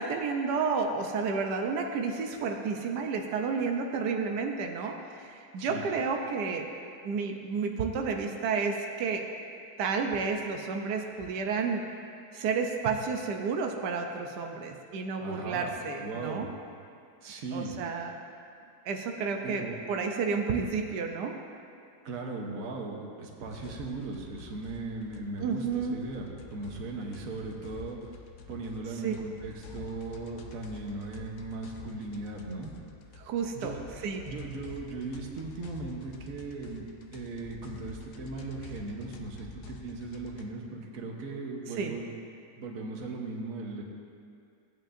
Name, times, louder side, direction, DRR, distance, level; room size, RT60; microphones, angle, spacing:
voice 1, 0.0-6.7 7.0-9.2 9.8-11.8 12.3-16.5 17.5-18.1 18.8-21.3 25.4-26.0 29.0-29.1 33.2-33.7 34.0-34.2 41.8-41.9, right 5 dB, 90° right, 3 dB, 1.3 m, -31 dB
voice 2, 15.2-15.7 16.0-16.5 17.2-17.7 19.3-19.8 22.0-28.0 28.5-32.7 33.5-33.8 34.2-42.1 42.6-43.8, right 3 dB, 60° right, 1 dB, 1.4 m, -38 dB
sound 1, 23.5-40.5, left 5 dB, 60° left, 0.9 m, -48 dB
15.5 x 8.9 x 2.6 m, 2.4 s
omnidirectional pair, 1.7 m